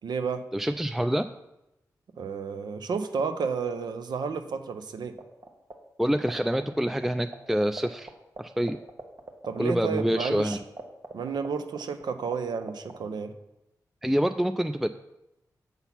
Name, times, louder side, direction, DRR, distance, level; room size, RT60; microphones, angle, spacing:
voice 1, 0.0-0.4 2.2-5.2 9.5-10.6 11.1-13.3, right 5 dB, 75° right, 8 dB, 0.6 m, -31 dB
voice 2, 0.5-1.3 6.0-8.1 8.4-8.8 9.6-10.6 14.0-14.9, equal, 5° right, 9 dB, 0.3 m, -26 dB
sound 1, 5.2-5.7 6.0-8.1 8.4-8.5 8.6-12.4 12.6-13.0, right 3 dB, 45° right, 1.1 m, -37 dB
7.0 x 4.0 x 5.8 m, 0.90 s
supercardioid pair, 40°, 7 cm